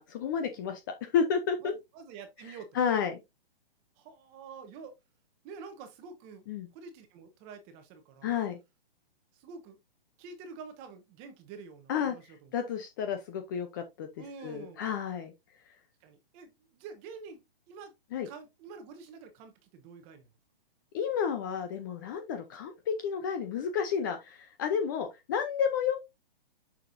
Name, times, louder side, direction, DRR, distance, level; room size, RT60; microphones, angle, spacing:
voice 1, 0.0-1.7 2.5-3.2 6.5-6.7 8.2-8.6 11.9-14.1 14.4-15.3 18.1-18.3 20.9-26.0, left 7 dB, 20° left, 0.5 m, -31 dB
voice 2, 1.6-2.7 4.0-4.9 5.4-6.4 6.7-8.3 9.3-9.8 10.2-12.5 14.2-14.8 16.0-17.4 17.7-17.9 18.2-20.3, right 5 dB, 20° right, 1.0 m, -47 dB
6.5 x 6.2 x 2.6 m
hypercardioid pair, 160°, 29 cm